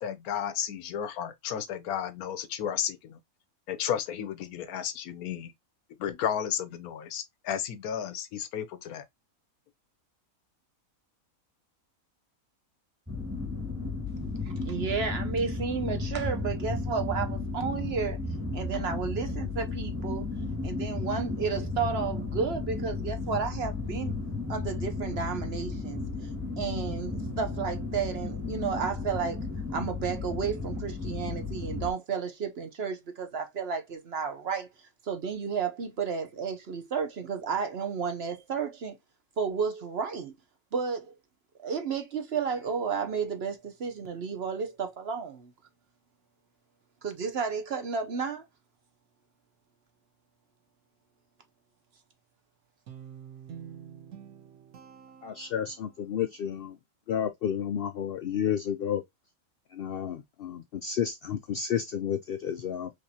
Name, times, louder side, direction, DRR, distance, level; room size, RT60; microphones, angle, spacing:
voice 1, 0.0-3.2 3.7-5.5 6.0-9.0, left 9 dB, 85° left, 1.2 m, -33 dB
sound 1, 13.1-31.9, left 3 dB, 10° right, 1.4 m, -34 dB
voice 2, 14.4-18.2 18.5-20.3 20.6-24.2 24.5-26.0 26.6-29.5 29.7-34.7 35.0-39.0 39.4-40.3 40.7-41.1 41.6-45.5 47.0-48.4, right 6 dB, 55° right, 0.9 m, -32 dB
Guitar, 52.9-56.1, right 8 dB, 80° right, 1.4 m, -47 dB
voice 3, 55.2-56.8 57.1-59.0 59.7-62.9, left 8 dB, 70° left, 0.5 m, -31 dB
5.0 x 3.2 x 2.7 m
omnidirectional pair, 1.5 m